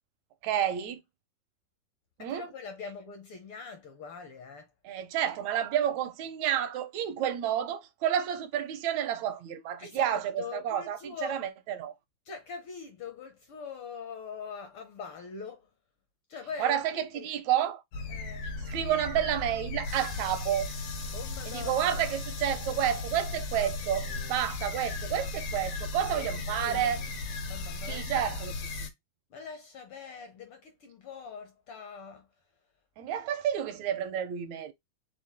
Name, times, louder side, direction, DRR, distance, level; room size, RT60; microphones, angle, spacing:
voice 1, 0.4-1.0 2.2-2.5 4.8-12.0 16.6-17.8 18.7-20.7 21.5-27.0 27.9-28.5 33.0-34.7, right 10 dB, 75° right, 2.1 m, -30 dB
voice 2, 2.2-4.7 9.8-11.4 12.2-15.7 16.3-17.3 18.1-18.5 21.1-22.0 26.0-27.0 27.5-28.2 29.3-32.3, left 5 dB, 70° left, 1.3 m, -43 dB
sound 1, 17.9-28.9, left 3 dB, 90° left, 2.8 m, -36 dB
5.8 x 2.3 x 3.5 m
omnidirectional pair, 3.4 m